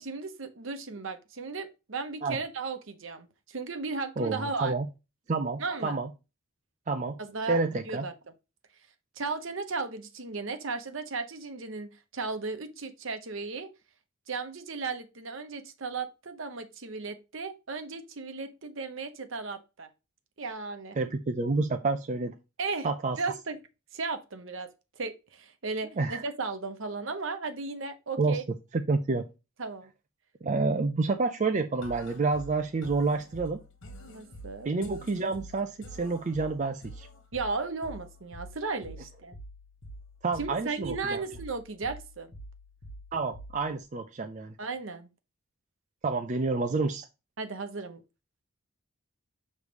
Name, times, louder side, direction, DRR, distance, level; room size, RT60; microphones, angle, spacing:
voice 1, 0.0-4.7 5.6-6.0 7.2-8.1 9.2-13.7 14.3-19.9 20.4-21.0 22.6-22.9 23.2-23.6 23.9-24.7 25.0-28.4 29.6-29.9 34.0-34.7 37.3-39.4 40.4-42.3 44.6-45.1 47.4-48.0, right 4 dB, 65° right, 0.9 m, -35 dB
voice 2, 4.2-4.9 5.3-6.1 6.9-7.2 7.5-8.0 21.0-22.3 22.8-23.2 26.0-26.2 28.2-28.4 28.7-29.2 30.4-33.6 34.6-37.1 40.2-41.2 43.1-44.5 46.0-47.1, right 3 dB, 35° right, 0.4 m, -29 dB
sound 1, 31.8-43.8, equal, 60° left, 1.3 m, -47 dB
6.5 x 3.2 x 5.0 m
head